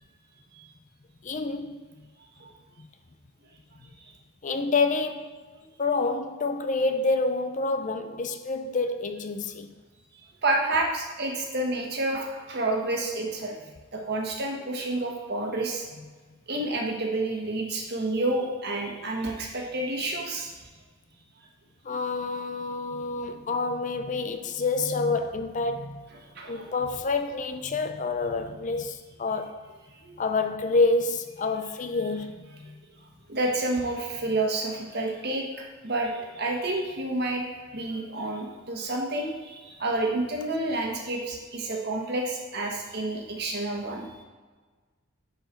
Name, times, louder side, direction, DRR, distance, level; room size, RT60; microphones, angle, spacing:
voice 1, 1.2-1.8 4.4-5.4 5.8-9.7 21.9-26.1 26.5-29.6 30.2-32.3, left 3 dB, 35° left, 0.5 m, -28 dB
voice 2, 2.2-2.5 4.0-4.1 10.4-13.5 13.9-15.8 16.5-20.5 26.3-26.7 30.0-30.2 33.3-37.5 37.7-44.2, right 2 dB, 50° right, 1.5 m, -29 dB
10.5 x 4.7 x 4.5 m
head